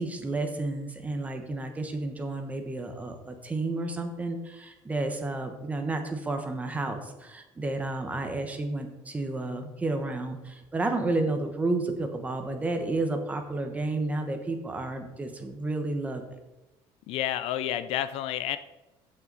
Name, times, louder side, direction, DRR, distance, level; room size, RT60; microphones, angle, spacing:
voice 1, 0.0-16.2, right 2 dB, 15° right, 6 dB, 1.1 m, -31 dB
voice 2, 17.1-18.6, left 12 dB, 60° left, 13 dB, 0.5 m, -30 dB
15.0 x 5.7 x 4.0 m, 1.1 s
cardioid pair, 170°, 11 cm